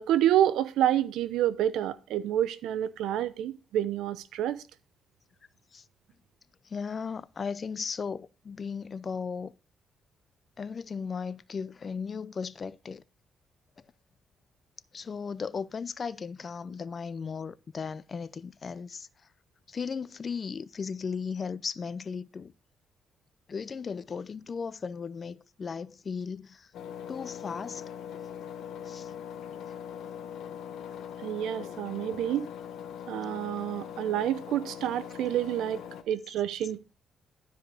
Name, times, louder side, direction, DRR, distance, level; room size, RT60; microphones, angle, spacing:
voice 1, 0.0-4.6 31.2-32.5 33.1-36.8, right 11 dB, 85° right, 0.7 m, -28 dB
voice 2, 6.6-9.5 10.6-13.0 14.9-19.1 19.7-22.5 23.5-26.7 27.1-27.8 28.9-29.1, left 5 dB, 40° left, 0.5 m, -36 dB
Engine, 26.7-36.0, left 8 dB, 75° left, 1.1 m, -41 dB
12.5 x 5.0 x 3.8 m
cardioid pair, 90°, 0 cm